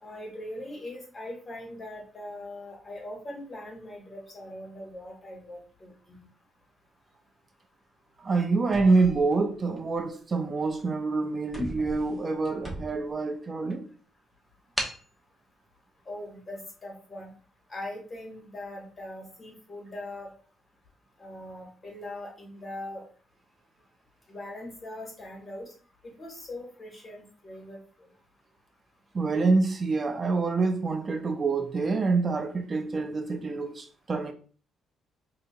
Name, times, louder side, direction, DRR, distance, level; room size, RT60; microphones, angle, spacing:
voice 1, 0.0-6.2 16.1-17.3 17.7-20.3 21.2-23.0 24.3-25.7 26.0-28.1, left 1 dB, 30° left, 1.9 m, -41 dB
voice 2, 8.2-13.8 29.1-34.3, right 3 dB, 35° right, 0.4 m, -26 dB
Metal Clinks, 8.6-10.0 10.6-10.8 11.1-11.2 11.4-13.2 13.7-13.8 14.8-15.1, equal, ahead, 0.9 m, -36 dB
4.7 x 2.8 x 2.5 m
cardioid pair, 90°, 0 cm